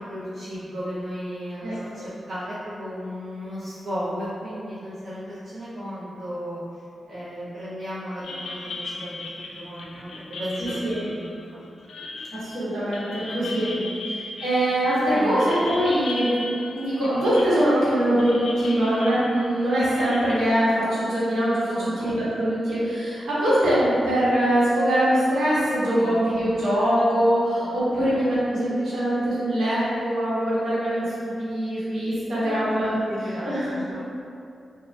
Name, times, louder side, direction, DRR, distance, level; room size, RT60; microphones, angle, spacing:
voice 1, 0.0-6.6 7.1-9.3 9.6-11.6 13.3-13.9 15.1-15.4 21.7-22.1 25.9-26.2 27.6-28.3 32.3-32.6 32.8-34.0, equal, 50° right, -13 dB, 0.6 m, -35 dB
sound 1, 8.2-20.3, left 2 dB, 75° left, 0.3 m, -37 dB
voice 2, 10.6-11.0 12.3-13.7 14.1-33.0 33.2-33.8, equal, 75° right, -11 dB, 1.1 m, -23 dB
3.2 x 2.2 x 2.5 m, 2.5 s
wide cardioid pair, 175°, 0 cm